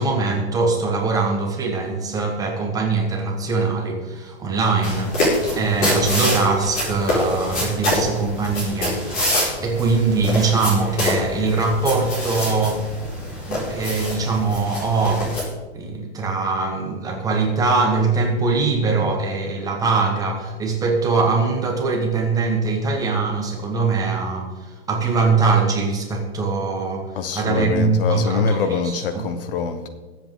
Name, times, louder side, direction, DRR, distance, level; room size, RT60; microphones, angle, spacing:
voice 1, 0.0-9.3 9.6-12.8 13.5-15.3 15.7-28.6 28.8-28.9, right 4 dB, 10° right, 1.4 m, -22 dB
sound 1, 4.8-15.4, left 1 dB, 25° left, 4.9 m, -25 dB
voice 2, 27.1-29.9, left 5 dB, 55° left, 1.3 m, -25 dB
21.5 x 8.0 x 3.9 m
hypercardioid pair, 165°, 34 cm